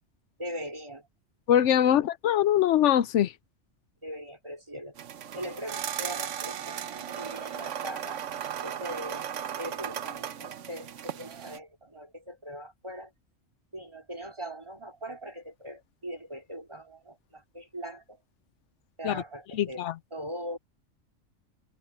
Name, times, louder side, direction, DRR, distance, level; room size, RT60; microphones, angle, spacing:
voice 1, 0.4-1.1 1.9-2.0 4.0-5.0 5.3-8.2 8.6-9.3 9.6-13.1 13.7-18.2 19.0-20.6, equal, 25° right, 4.1 m, -41 dB
voice 2, 1.5-3.3 19.0-19.2 19.6-19.9, left 10 dB, 85° left, 1.0 m, -23 dB
sound 1, 5.0-11.6, right 9 dB, 90° right, 1.1 m, -36 dB
omnidirectional pair, 1.2 m